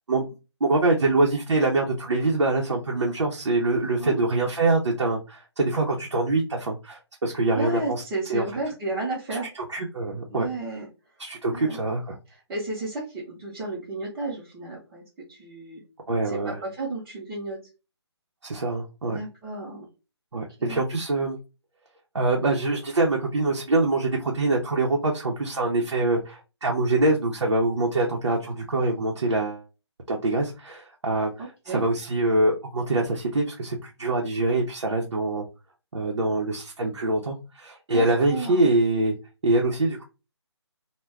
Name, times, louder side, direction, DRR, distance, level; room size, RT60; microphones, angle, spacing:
voice 1, 0.6-8.0 8.3-8.4 9.5-10.5 11.2-12.2 16.1-16.6 18.4-19.2 20.3-21.4 22.1-29.6 30.1-35.5 35.9-39.1 39.4-40.0, right 2 dB, 85° right, -1 dB, 0.7 m, -24 dB
voice 2, 7.5-9.5 10.3-10.8 11.5-11.8 12.5-15.0 15.3-15.8 16.3-17.6 19.1-19.8 20.3-20.8 31.4-31.8 37.9-38.7, right 2 dB, 15° right, -8 dB, 0.7 m, -33 dB
2.2 x 2.2 x 3.4 m, 0.30 s
figure-of-eight pair, 155°, 15 cm